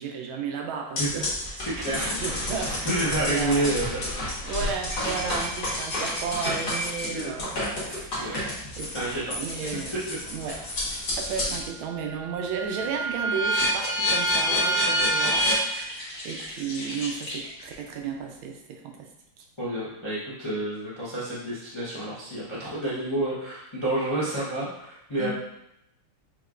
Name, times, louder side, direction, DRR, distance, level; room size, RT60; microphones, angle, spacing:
voice 1, 0.0-1.3 1.6-3.7 4.4-9.0 9.4-10.0 10.3-19.1 25.2-25.3, right 6 dB, 75° right, 2 dB, 1.4 m, -34 dB
sound 1, 1.0-11.7 12.1-17.7, equal, 55° left, 1.9 m, -29 dB
voice 2, 1.8-2.2 2.8-4.0 4.6-4.7 7.0-7.3 8.2-8.7 8.9-9.3 10.1-10.2 19.6-25.3, right 1 dB, 40° left, -9 dB, 0.4 m, -29 dB
5.6 x 3.0 x 2.4 m, 0.80 s
omnidirectional pair, 2.3 m